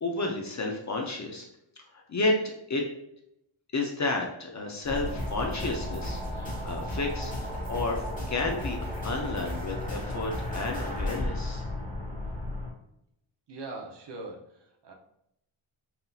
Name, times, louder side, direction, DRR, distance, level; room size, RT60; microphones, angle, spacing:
voice 1, 0.0-1.5 1.8-2.4 2.7-2.8 3.7-8.0 8.3-11.6, left 2 dB, 35° left, 2 dB, 0.5 m, -31 dB
sound 1, 4.8-12.7, left 1 dB, 15° left, 1.0 m, -34 dB
voice 2, 13.5-14.9, right 2 dB, 60° right, 1 dB, 0.8 m, -41 dB
5.6 x 2.6 x 2.3 m, 0.78 s
wide cardioid pair, 180°, 49 cm